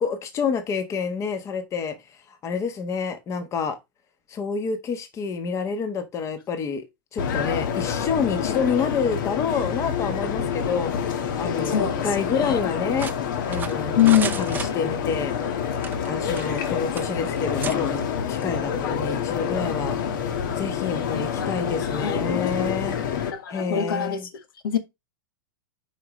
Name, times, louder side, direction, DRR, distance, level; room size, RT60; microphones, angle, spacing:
voice 1, 0.0-2.0 2.3-3.8 4.3-6.8 7.1-13.1 13.5-15.3 16.0-20.0 20.6-23.0 23.5-24.2, left 5 dB, 25° left, 1.2 m, -28 dB
sound 1, 7.2-23.3, left 7 dB, 60° left, 1.6 m, -27 dB
voice 2, 11.6-12.6 13.9-14.4 20.8-21.5 21.8-22.2 23.3-24.3 24.6-24.8, left 9 dB, 75° left, 1.5 m, -24 dB
sound 2, 13.0-15.2 15.8-16.7 17.0-17.1 17.6-17.8, right 7 dB, 15° right, 0.6 m, -34 dB
8.9 x 5.0 x 3.1 m
hypercardioid pair, 130°, 12 cm